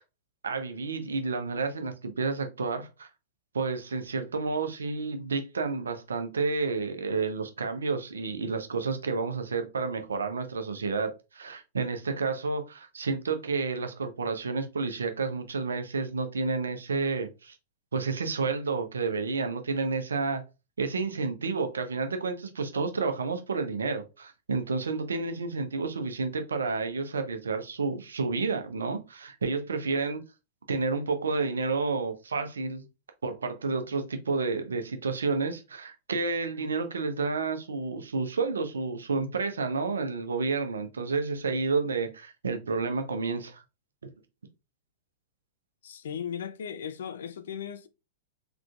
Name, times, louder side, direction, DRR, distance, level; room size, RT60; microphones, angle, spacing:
voice 1, 0.4-3.1 3.5-17.6 17.9-20.4 20.8-30.2 30.7-32.8 33.2-43.6, right 4 dB, 75° right, 0.7 m, -30 dB
voice 2, 45.8-47.9, left 8 dB, 65° left, 0.4 m, -37 dB
3.7 x 3.3 x 2.4 m
figure-of-eight pair, 100°, 0 cm